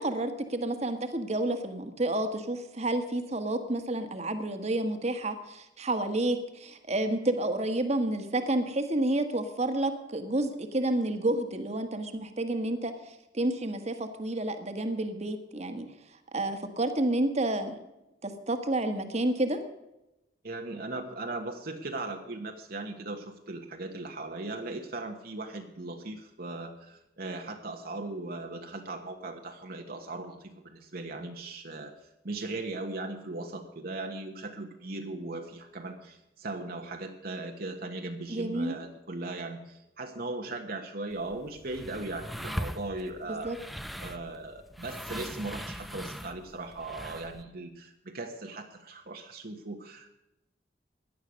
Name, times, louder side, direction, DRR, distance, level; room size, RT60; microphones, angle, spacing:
voice 1, 0.0-15.9 16.3-17.8 18.2-19.6 38.3-38.8 43.3-43.6, right 1 dB, 40° right, 8 dB, 1.5 m, -30 dB
voice 2, 20.4-43.6 44.0-50.1, right 2 dB, 55° right, 3 dB, 1.3 m, -38 dB
sound 1, 41.1-47.4, equal, ahead, 0.7 m, -40 dB
17.0 x 11.0 x 6.4 m, 0.91 s
head